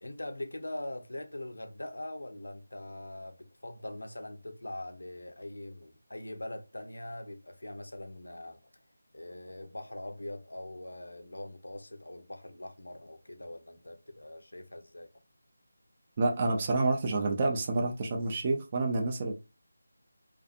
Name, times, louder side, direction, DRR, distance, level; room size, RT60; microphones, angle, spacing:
voice 1, 0.0-3.4 3.6-8.6 9.1-15.1, left 1 dB, 90° left, 0.6 m, -42 dB
voice 2, 16.2-19.3, right 3 dB, 25° right, 0.4 m, -28 dB
2.5 x 2.4 x 2.4 m
figure-of-eight pair, 170°, 0 cm